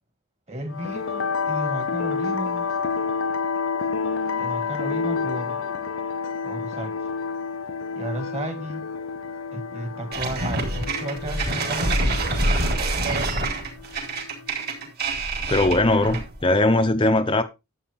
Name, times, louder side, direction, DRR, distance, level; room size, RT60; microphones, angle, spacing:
voice 1, 0.5-2.6 4.4-5.6 6.4-7.0 8.0-8.9 9.5-12.5, right 1 dB, 30° right, 2.2 m, -33 dB
sound 1, 0.7-14.8, left 5 dB, 65° left, 0.6 m, -30 dB
sound 2, 10.1-16.4, right 2 dB, 45° right, 3.6 m, -26 dB
voice 2, 15.5-17.4, left 2 dB, 25° left, 0.7 m, -20 dB
12.0 x 8.3 x 3.6 m
head